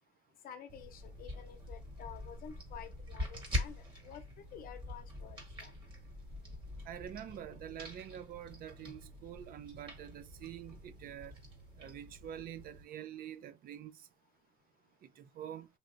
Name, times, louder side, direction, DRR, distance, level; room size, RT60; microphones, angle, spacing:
voice 1, 0.4-5.7, left 9 dB, 60° left, 0.7 m, -51 dB
sound 1, 0.7-12.8, left 1 dB, 30° right, 1.7 m, -44 dB
voice 2, 6.9-11.3 11.8-14.0 15.2-15.7, right 10 dB, 60° right, 0.5 m, -46 dB
3.2 x 2.7 x 2.5 m
cardioid pair, 110°, 17 cm